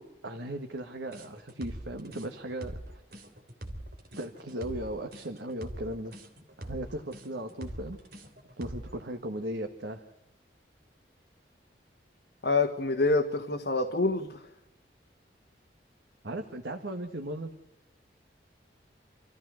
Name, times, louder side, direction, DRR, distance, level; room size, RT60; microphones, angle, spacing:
voice 1, 0.0-2.8 4.2-6.2 6.6-8.0 8.6-10.0 16.2-17.5, right 1 dB, 80° right, 4 dB, 1.7 m, -37 dB
sound 1, 1.1-9.0, right 1 dB, 60° right, 3.3 m, -42 dB
voice 2, 12.4-14.4, left 3 dB, 60° left, 3 dB, 1.7 m, -26 dB
28.0 x 15.0 x 6.4 m, 0.86 s
head